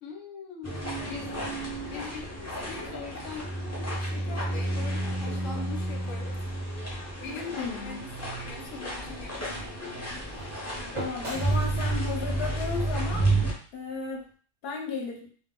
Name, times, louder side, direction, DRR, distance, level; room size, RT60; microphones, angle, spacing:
voice 1, 0.0-3.5 3.9-6.4 7.2-9.7, left 4 dB, 90° left, 1 dB, 1.0 m, -42 dB
sound 1, 0.6-13.5, right 2 dB, 20° left, 0.5 m, -31 dB
voice 2, 7.3-8.0 10.9-13.3 13.7-14.3 14.6-15.3, left 5 dB, 55° left, 1 dB, 0.9 m, -34 dB
sound 2, 8.2-14.3, right 3 dB, 40° right, 0.4 m, -45 dB
2.3 x 2.0 x 3.6 m, 0.43 s
omnidirectional pair, 1.3 m